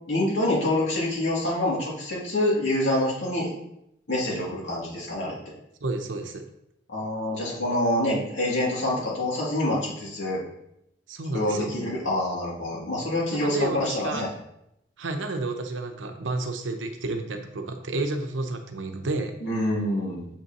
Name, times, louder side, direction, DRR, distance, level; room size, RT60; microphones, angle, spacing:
voice 1, 0.1-3.6 4.1-5.4 6.9-10.4 11.3-14.3 19.4-20.2, left 1 dB, 85° left, -5 dB, 2.5 m, -26 dB
voice 2, 5.8-6.4 11.1-11.8 13.3-14.2 15.0-19.3, right 2 dB, 85° right, 6 dB, 0.7 m, -31 dB
7.1 x 5.4 x 2.9 m, 0.80 s
head